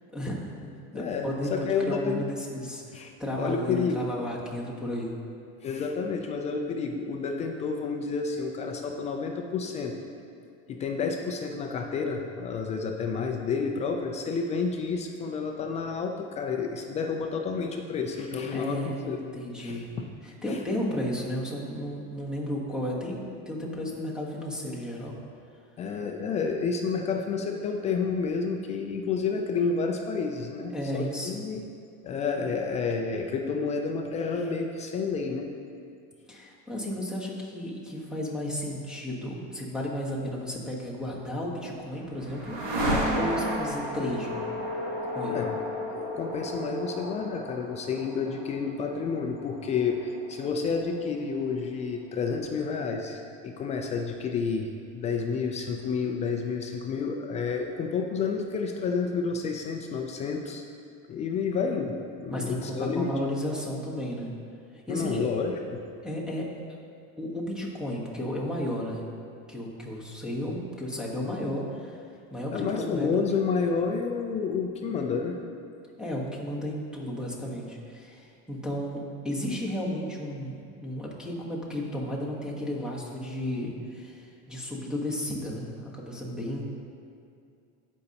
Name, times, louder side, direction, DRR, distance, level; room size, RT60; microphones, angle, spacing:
voice 1, 0.1-5.1 18.5-19.9 20.2-23.2 23.5-25.2 30.7-31.4 36.3-44.4 45.1-45.4 62.3-64.3 64.7-65.2 66.0-66.5 67.2-69.0 69.5-72.0 72.3-73.2 76.0-86.6, equal, ahead, -3 dB, 1.1 m, -33 dB
voice 2, 0.9-2.2 2.9-3.1 3.4-4.0 5.6-10.0 10.7-19.2 19.6-20.1 20.5-20.6 25.8-31.6 32.0-35.5 45.3-45.5 45.9-60.6 61.1-63.1 64.9-65.8 72.5-75.4, left 5 dB, 20° left, 3 dB, 0.3 m, -30 dB
sound 1, 41.4-51.3, equal, 50° right, 1.9 m, -33 dB
14.5 x 5.3 x 2.8 m, 2.4 s
supercardioid pair, 150°, 34 cm